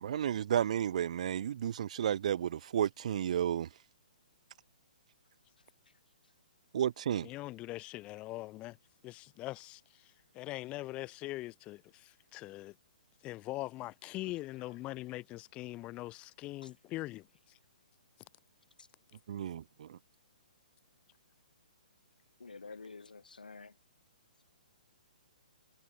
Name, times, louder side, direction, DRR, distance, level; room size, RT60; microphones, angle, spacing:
voice 1, 0.0-3.7 6.7-7.3 19.3-20.0, right 9 dB, 55° right, 0.4 m, -32 dB
voice 2, 7.2-8.8 9.0-12.7 13.2-17.6, left 18 dB, 25° left, 3.4 m, -42 dB
voice 3, 22.4-23.7, left 4 dB, 80° left, 2.4 m, -49 dB
figure-of-eight pair, 130°, 5 cm